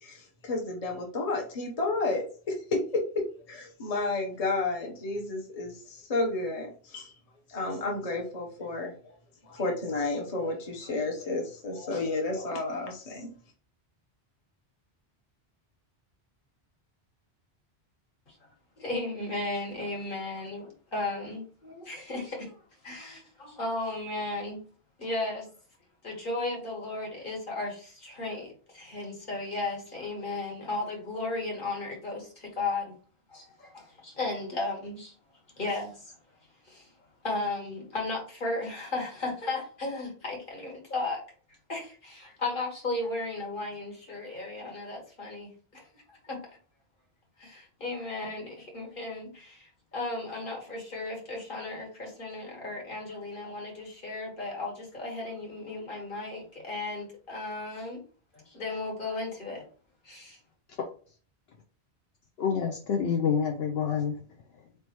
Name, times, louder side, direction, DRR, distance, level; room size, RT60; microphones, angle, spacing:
voice 1, 0.0-7.1 7.5-8.9 9.4-13.3, left 2 dB, 40° left, 1 dB, 0.9 m, -31 dB
voice 2, 18.8-24.6 25.0-25.5 26.0-33.0 33.3-35.1 35.6-36.4 36.6-37.0 37.2-41.2 41.5-46.4 47.4-58.0 58.3-59.7 60.0-60.4, left 2 dB, 55° left, -1 dB, 1.7 m, -35 dB
voice 3, 62.4-64.2 64.5-64.7, left 7 dB, 75° left, 2 dB, 0.9 m, -28 dB
4.2 x 3.4 x 3.0 m, 0.41 s
omnidirectional pair, 1.1 m